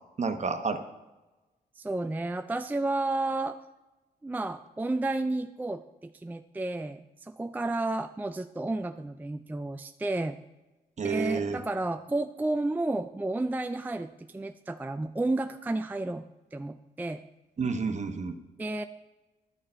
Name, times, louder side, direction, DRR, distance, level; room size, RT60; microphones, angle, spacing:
voice 1, 0.2-0.8 11.0-11.6 17.6-18.4, right 5 dB, 45° right, 7 dB, 1.0 m, -30 dB
voice 2, 1.8-3.6 4.2-10.4 11.0-16.2 16.5-17.2 18.6-18.8, right 2 dB, 10° right, 8 dB, 0.3 m, -31 dB
11.0 x 6.6 x 4.4 m, 1.1 s
cardioid pair, 70°, 16 cm